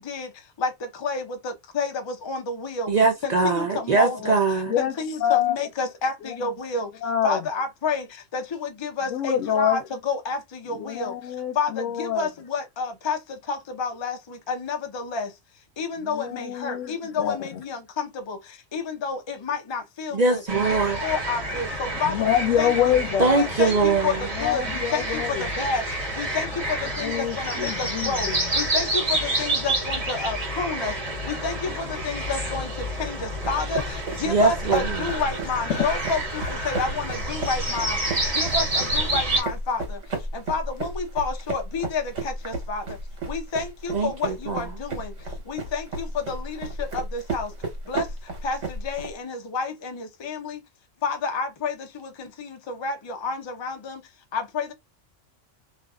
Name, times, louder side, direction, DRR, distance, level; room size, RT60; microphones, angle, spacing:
voice 1, 1.0-1.9 2.3-2.9 3.2-4.4 4.8-6.9 7.2-8.0 8.3-10.4 10.7-11.1 11.6-11.7 12.0-13.2 13.5-14.2 14.5-15.3 15.8-18.4 18.7-20.4 20.7-22.1 22.6-23.0 23.3-24.1 24.4-25.0 25.6-25.8 26.2-26.5 27.0-27.1 27.4-28.3 28.6-30.9 31.4-31.7 32.0-32.7 33.0-33.8 34.2-38.0 38.4-39.8 40.5-42.0 42.5-42.8 43.3-45.1 45.5-46.7 46.9-47.5 47.9-48.0 48.4-48.6 48.8-50.6 51.0-51.7 52.4-52.5 52.8-54.0 54.3-54.7, left 4 dB, 50° left, 0.3 m, -29 dB
voice 2, 2.9-4.7 20.1-21.0 23.2-24.2 34.3-35.1 43.9-44.6, right 3 dB, 55° right, 0.5 m, -22 dB
voice 3, 5.2-5.6 6.2-6.3 7.0-7.4 9.1-9.8 10.7-12.3 16.0-17.6 22.0-23.5 24.3-25.5 27.0-28.5 31.7-31.8 35.7-35.8, left 10 dB, 90° left, 1.0 m, -26 dB
sound 1, 20.5-39.4, right 1 dB, 30° right, 1.1 m, -29 dB
sound 2, 33.4-49.1, right 2 dB, 70° right, 1.2 m, -33 dB
2.5 x 2.4 x 2.2 m
omnidirectional pair, 1.3 m